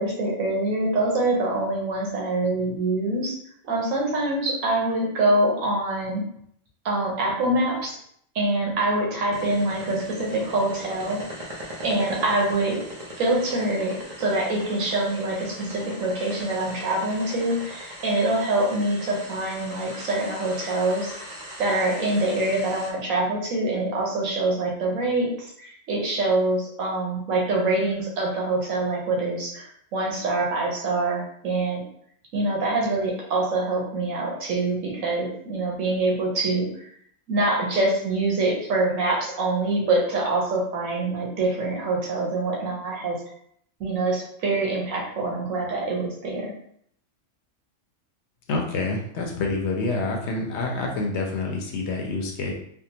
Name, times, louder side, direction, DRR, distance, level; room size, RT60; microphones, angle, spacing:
voice 1, 0.0-3.4 3.6-6.2 6.8-8.0 8.3-11.4 11.8-12.8 13.2-21.1 21.6-31.8 32.3-36.9 37.3-43.2 43.8-46.5, right 2 dB, 85° right, -2 dB, 1.3 m, -25 dB
sound 1, 9.3-22.9, equal, 40° right, 0.6 m, -39 dB
voice 2, 48.5-52.5, left 3 dB, 65° left, 0 dB, 0.8 m, -27 dB
3.5 x 2.0 x 2.8 m, 0.67 s
omnidirectional pair, 1.4 m